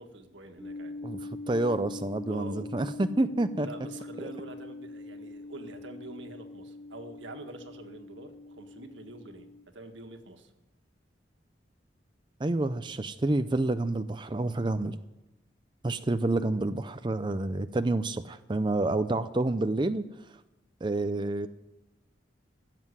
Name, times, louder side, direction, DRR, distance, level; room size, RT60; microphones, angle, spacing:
voice 1, 0.0-1.0 2.3-2.6 3.6-9.5 9.7-10.5, right 2 dB, 90° right, 6 dB, 1.7 m, -45 dB
sound 1, 0.6-9.6, left 2 dB, 70° left, 6.6 m, -43 dB
voice 2, 1.0-3.7 4.2-4.3 12.4-15.0 15.8-20.0 20.8-21.5, right 2 dB, 25° right, 10 dB, 0.5 m, -28 dB
15.5 x 7.7 x 9.7 m, 0.97 s
head